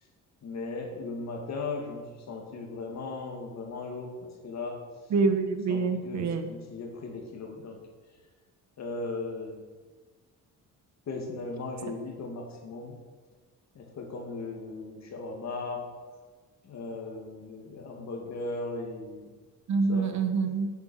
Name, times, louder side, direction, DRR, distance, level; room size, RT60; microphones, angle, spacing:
voice 1, 0.4-4.8 5.7-7.8 8.8-9.6 11.1-13.0 13.7-15.8 16.6-19.3 19.9-20.1, left 3 dB, 55° left, 2 dB, 2.3 m, -37 dB
voice 2, 5.1-6.5 19.7-20.7, right 4 dB, 55° right, 8 dB, 1.2 m, -26 dB
8.3 x 8.1 x 6.3 m, 1.4 s
cardioid pair, 135°, 33 cm